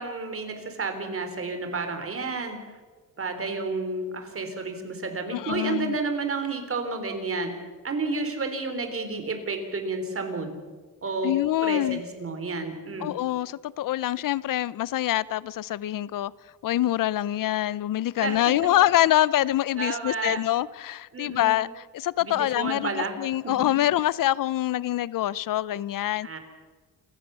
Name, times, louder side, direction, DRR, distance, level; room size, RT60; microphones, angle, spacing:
voice 1, 0.0-2.6 3.2-7.5 7.8-10.6 11.0-11.4 11.6-13.1 18.2-18.4 19.8-20.4 21.1-21.6 22.2-23.1 23.4-23.5 26.2-26.4, right 3 dB, 40° right, 3.8 m, -31 dB
voice 2, 5.3-5.9 11.2-12.0 13.0-16.3 16.6-26.3, left 13 dB, 70° left, 0.6 m, -25 dB
29.0 x 15.0 x 6.9 m
cardioid pair, 115°, 34 cm